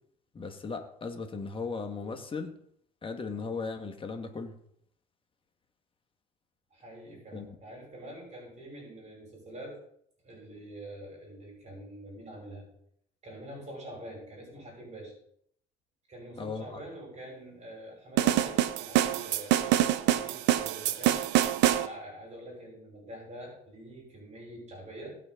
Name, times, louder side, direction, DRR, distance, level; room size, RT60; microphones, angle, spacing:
voice 1, 0.3-2.5 3.0-4.6 7.3-7.5 16.4-16.8, left 4 dB, 30° left, 1.8 m, -37 dB
voice 2, 6.7-9.8 10.2-12.7 13.2-15.2 16.1-21.2 21.7-25.2, right 1 dB, 40° right, 5.5 m, -45 dB
sound 1, 18.2-21.9, right 13 dB, 70° right, 0.8 m, -25 dB
17.5 x 6.5 x 3.9 m
supercardioid pair, 75°, 19 cm